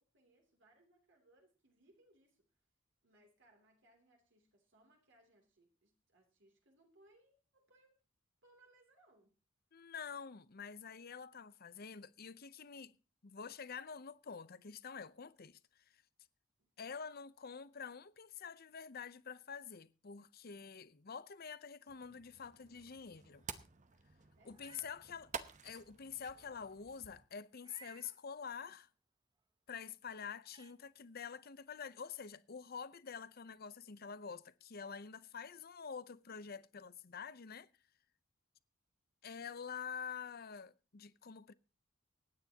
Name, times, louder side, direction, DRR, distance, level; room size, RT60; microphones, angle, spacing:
voice 1, 0.1-2.5 3.0-8.0 8.4-9.3 24.4-24.6, right 1 dB, 60° right, 3.0 m, -69 dB
voice 2, 9.7-12.9 13.2-15.6 15.9-16.0 16.8-23.5 24.4-25.3 25.6-28.9 29.7-37.7 39.2-41.5, left 6 dB, 50° left, 0.7 m, -47 dB
sound 1, 21.9-27.3, right 6 dB, 35° right, 0.9 m, -51 dB
Meow, 24.4-24.9 25.4-25.5 27.6-28.2 29.8-29.9 30.4-30.7, right 4 dB, 20° right, 0.6 m, -60 dB
24.5 x 9.5 x 2.9 m
head